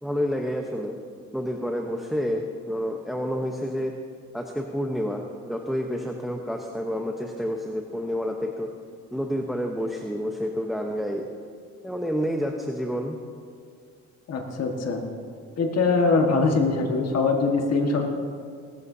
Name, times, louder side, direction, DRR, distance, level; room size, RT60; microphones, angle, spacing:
voice 1, 0.0-0.9 1.3-3.9 4.3-8.7 9.1-11.3 11.8-13.2, equal, ahead, 2 dB, 0.9 m, -29 dB
voice 2, 14.3-15.0 15.6-18.1, left 3 dB, 55° left, 2 dB, 1.6 m, -22 dB
18.5 x 14.0 x 2.8 m, 2.1 s
cardioid pair, 90°, 30 cm